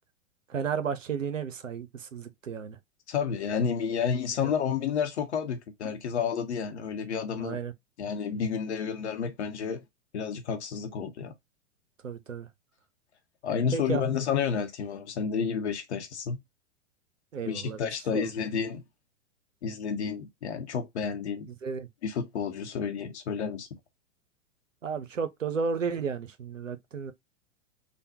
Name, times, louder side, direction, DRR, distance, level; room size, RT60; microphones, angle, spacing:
voice 1, 0.5-2.8 4.4-4.5 7.4-7.7 12.0-12.5 13.7-14.0 17.3-18.3 21.6-21.9 24.8-27.1, right 6 dB, 80° right, 0.6 m, -33 dB
voice 2, 3.1-7.6 8.0-9.8 10.1-11.3 13.4-16.4 17.5-18.8 19.6-21.5 22.0-23.7, left 6 dB, 60° left, 0.8 m, -30 dB
3.4 x 2.2 x 2.7 m
figure-of-eight pair, 100°, 38 cm